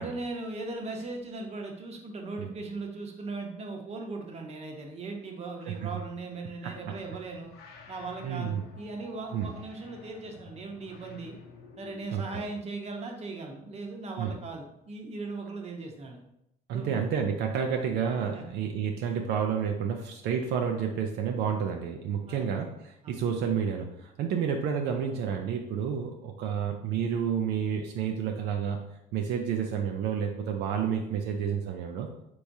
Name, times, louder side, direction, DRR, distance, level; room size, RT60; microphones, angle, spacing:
voice 1, 0.0-7.5 7.9-11.4 11.8-16.2 16.7-17.1 18.3-18.4 22.3-22.4 23.0-23.1, right 3 dB, 40° right, 2 dB, 0.9 m, -38 dB
voice 2, 6.6-6.9 8.2-8.6 9.3-9.5 12.1-12.4 14.2-14.4 16.7-28.8 29.1-32.1, right 7 dB, 75° right, 2 dB, 0.5 m, -30 dB
sound 1, 6.9-12.3, left 4 dB, 90° left, 0.7 m, -51 dB
4.6 x 3.5 x 2.7 m, 0.80 s
cardioid pair, 110°, 17 cm